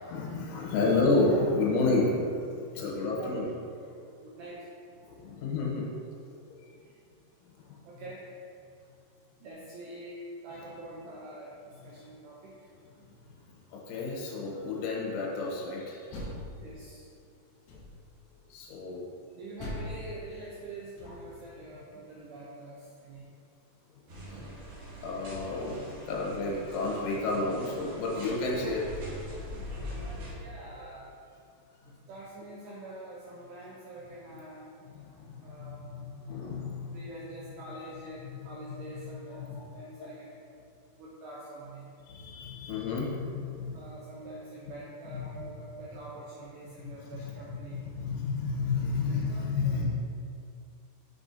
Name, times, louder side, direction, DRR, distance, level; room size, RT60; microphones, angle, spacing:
voice 1, 0.1-2.4 2.7-3.5 5.1-5.9 13.7-16.0 18.5-19.0 25.0-28.9 35.3-37.1 38.2-38.4 39.3-40.1 42.1-43.8 45.1-45.4 46.8-47.6 47.9-49.9, left 3 dB, 85° left, -3 dB, 3.3 m, -31 dB
voice 2, 4.2-4.7 6.8-7.0 7.9-8.3 9.4-12.5 16.6-17.1 19.3-23.2 30.3-31.1 31.8-34.7 35.4-35.9 36.9-40.4 40.9-41.9 43.7-47.8 48.9-49.9, right 2 dB, 85° right, -5 dB, 2.4 m, -45 dB
Door, 16.1-17.1 17.7-18.2 19.6-21.5, left 1 dB, 70° left, 2.5 m, -41 dB
sound 1, 24.1-30.4, equal, 65° right, 2.3 m, -42 dB
6.9 x 6.1 x 2.7 m, 2.3 s
omnidirectional pair, 5.7 m